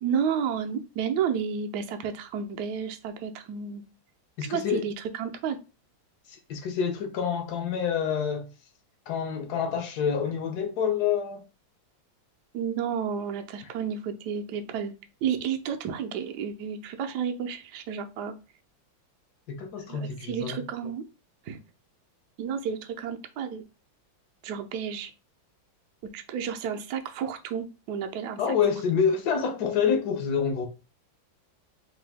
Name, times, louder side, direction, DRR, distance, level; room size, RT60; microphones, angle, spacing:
voice 1, 0.0-3.8 4.5-5.6 12.5-14.9 15.2-18.3 19.9-21.0 21.5-21.6 22.4-23.6 24.4-25.1 26.1-28.4, right 7 dB, 70° right, 1.0 m, -31 dB
voice 2, 4.4-4.8 6.3-8.5 9.1-11.4 19.5-20.7 28.4-30.7, left 7 dB, 65° left, 1.1 m, -27 dB
3.9 x 2.6 x 3.4 m
omnidirectional pair, 2.1 m